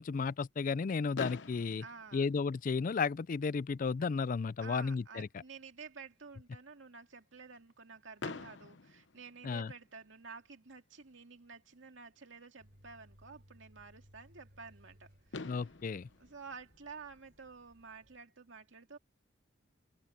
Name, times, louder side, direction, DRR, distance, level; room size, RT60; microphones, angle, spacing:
voice 1, 0.0-1.8 2.1-5.3 9.4-9.7 15.5-16.1, left 5 dB, 45° left, 0.4 m, -33 dB
Fireworks, 1.1-3.2 4.0-4.1 4.3-4.5 4.8-4.9 8.2-10.0 11.7-11.8 14.9-15.0 15.3-17.6, left 3 dB, 70° left, 0.9 m, -47 dB
voice 2, 1.8-2.3 4.6-15.6 16.2-19.0, right 5 dB, 80° right, 2.2 m, -51 dB
sound 1, 12.6-18.2, equal, 55° right, 4.5 m, -63 dB
open air
head